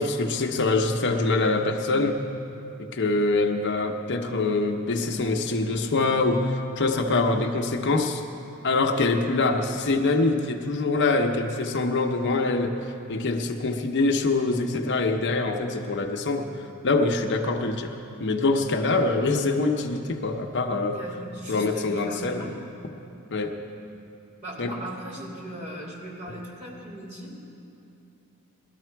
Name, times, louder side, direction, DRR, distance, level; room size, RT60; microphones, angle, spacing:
voice 1, 0.0-2.2 2.8-8.2 8.6-16.5 16.8-17.9 18.2-21.0 21.5-22.5 23.3-23.5 24.6-24.7, left 3 dB, 55° left, 3 dB, 0.8 m, -24 dB
voice 2, 20.9-22.7 24.4-27.3, right 1 dB, 30° right, -3 dB, 2.9 m, -38 dB
18.5 x 12.5 x 4.6 m, 2.7 s
head